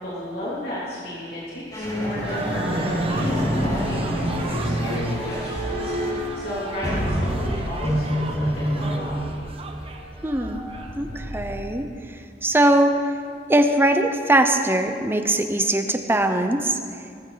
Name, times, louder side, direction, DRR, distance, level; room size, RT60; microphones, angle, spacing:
voice 1, 0.0-9.5, left 1 dB, 60° left, -8 dB, 3.3 m, -34 dB
sound 1, 1.7-11.8, equal, 25° left, 5.1 m, -27 dB
sound 2, 2.2-11.0, right 3 dB, 35° right, 1.1 m, -37 dB
voice 2, 10.2-10.6 10.9-11.9 12.4-13.0 13.5-16.8, right 1 dB, 15° right, 7 dB, 0.8 m, -20 dB
19.5 x 15.0 x 4.0 m, 2.2 s
head